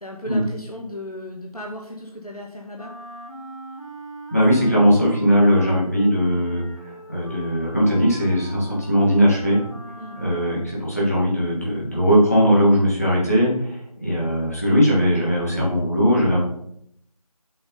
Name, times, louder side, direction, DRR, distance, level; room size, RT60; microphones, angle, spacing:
voice 1, 0.0-2.9 10.0-10.2, left 1 dB, 75° left, 0 dB, 1.8 m, -36 dB
Wind instrument woodwind instrument, 2.7-10.9, right 1 dB, 50° left, 2.8 m, -40 dB
voice 2, 4.3-9.6 10.1-16.4, equal, 25° left, -6 dB, 2.4 m, -19 dB
7.7 x 5.8 x 5.6 m, 0.72 s
figure-of-eight pair, 175°, 19 cm